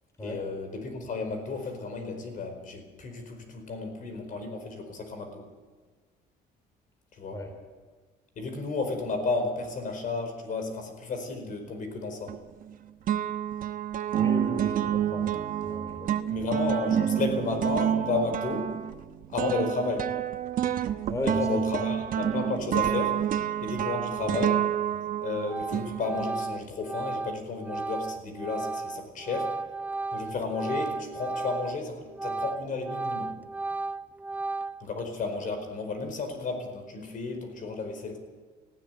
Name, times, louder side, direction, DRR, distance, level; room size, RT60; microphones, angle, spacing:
voice 1, 0.2-5.4 7.1-7.4 8.4-12.4 16.3-18.7 19.3-20.1 21.2-23.2 23.6-24.7 25.2-29.5 30.1-33.4 34.8-38.2, left 3 dB, 50° left, 6 dB, 4.7 m, -33 dB
sound 1, 12.3-12.7 13.1-26.5, right 10 dB, 55° right, 1.1 m, -29 dB
voice 2, 14.2-16.4 21.1-21.6 24.2-24.4, left 1 dB, 20° left, 5 dB, 3.4 m, -36 dB
Organ, 24.9-25.2 25.5-31.8 32.1-35.0, right 3 dB, 10° right, 0.6 m, -34 dB
18.5 x 15.5 x 9.3 m, 1.4 s
cardioid pair, 110°, 17 cm